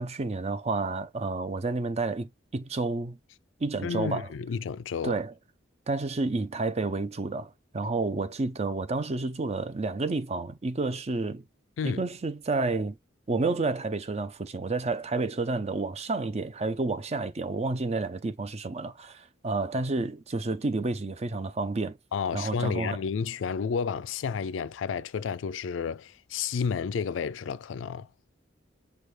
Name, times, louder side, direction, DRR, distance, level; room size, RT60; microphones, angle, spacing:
voice 1, 0.0-3.2 3.6-4.3 5.0-5.3 5.9-11.4 11.8-13.0 13.3-22.0 22.3-23.0, right 3 dB, 35° right, 0.6 m, -30 dB
voice 2, 3.8-5.2 11.8-12.0 22.1-28.1, left 6 dB, 85° left, 0.4 m, -31 dB
6.0 x 2.3 x 3.3 m
head